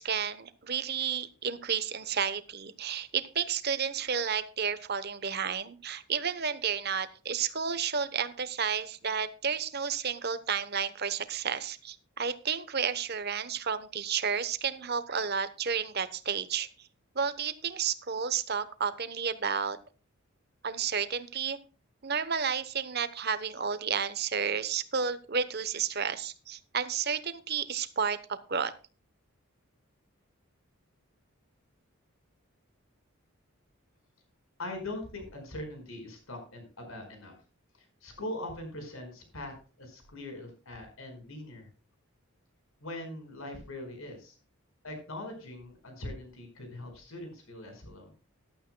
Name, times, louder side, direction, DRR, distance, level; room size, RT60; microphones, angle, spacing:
voice 1, 0.0-16.9 17.1-19.8 20.6-21.6 22.0-28.7, right 6 dB, 45° right, 14 dB, 0.9 m, -31 dB
voice 2, 34.6-37.3 38.0-41.7 42.8-44.4 44.8-48.1, left 1 dB, 70° left, 5 dB, 4.9 m, -41 dB
14.5 x 12.0 x 2.2 m, 0.35 s
head